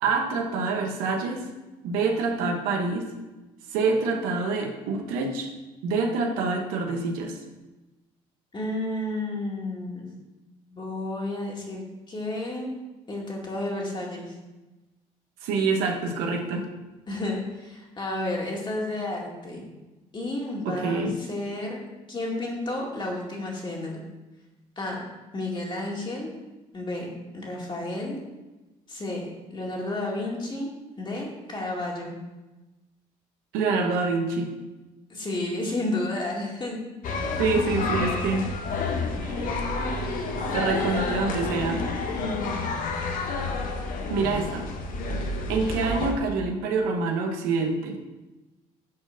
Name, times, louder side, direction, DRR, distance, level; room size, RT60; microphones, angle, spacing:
voice 1, 0.0-1.5 1.8-3.1 3.7-5.5 5.8-7.4 15.4-16.7 20.6-21.1 33.5-34.5 37.4-38.5 39.2-39.5 40.5-41.8 44.1-44.7 45.5-48.0, right 4 dB, 90° right, 2 dB, 1.1 m, -26 dB
voice 2, 8.5-10.1 10.7-12.7 13.1-14.3 17.1-19.6 20.1-21.8 22.1-24.0 24.8-25.1 25.3-26.3 26.7-28.2 28.9-30.7 31.0-32.2 35.1-36.8 42.1-42.6, left 2 dB, 30° left, -2 dB, 2.3 m, -31 dB
sound 1, 37.0-46.1, left 3 dB, 65° left, 1.0 m, -29 dB
5.8 x 4.3 x 6.3 m, 1.1 s
supercardioid pair, 80°, 15 cm